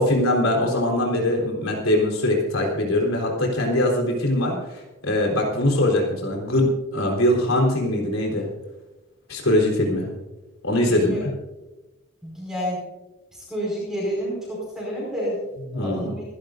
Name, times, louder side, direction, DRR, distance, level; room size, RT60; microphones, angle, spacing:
voice 1, 0.0-8.5 9.3-10.1 10.6-11.3 15.6-16.1, left 1 dB, 85° left, 0 dB, 4.0 m, -22 dB
voice 2, 10.9-11.2 12.2-12.8 13.3-15.4 15.7-16.2, equal, 5° right, -5 dB, 5.1 m, -29 dB
28.5 x 12.0 x 2.6 m, 1.1 s
head